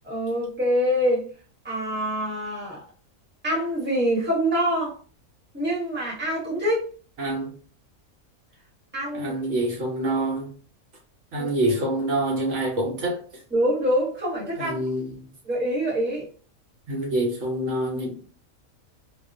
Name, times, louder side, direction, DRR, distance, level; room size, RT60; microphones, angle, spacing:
voice 1, 0.0-1.2 1.6-2.8 3.4-4.9 5.5-6.8 8.9-9.3 11.4-11.5 13.5-14.8 15.4-16.2, equal, 10° right, 0.9 m, -25 dB
voice 2, 7.2-7.5 9.1-10.5 11.3-13.4 14.6-15.2 16.9-18.1, right 1 dB, 65° right, 0.9 m, -26 dB
2.3 x 2.2 x 2.5 m
omnidirectional pair, 1.4 m